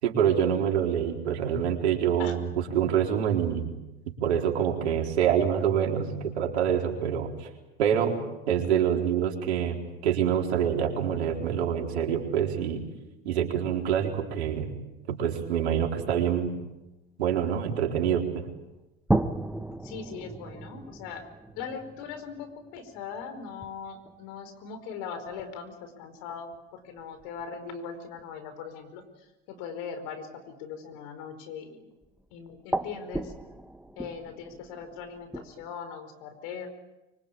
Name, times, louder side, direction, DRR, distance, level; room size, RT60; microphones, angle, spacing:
voice 1, 0.0-3.7 4.1-7.5 7.8-8.2 8.5-12.8 13.2-14.7 15.1-16.5 17.2-18.4, right 8 dB, 80° right, 2 dB, 4.3 m, -26 dB
sound 1, 19.1-24.4 25.3-25.4 26.5-26.6 26.9-27.5 32.0-32.2 32.5-35.7, right 1 dB, 5° right, 1.3 m, -34 dB
voice 2, 19.8-21.3 21.6-31.9 32.3-33.3 34.0-36.7, left 6 dB, 65° left, 9 dB, 5.0 m, -40 dB
25.0 x 24.5 x 8.7 m, 1.0 s
hypercardioid pair, 80°, 32 cm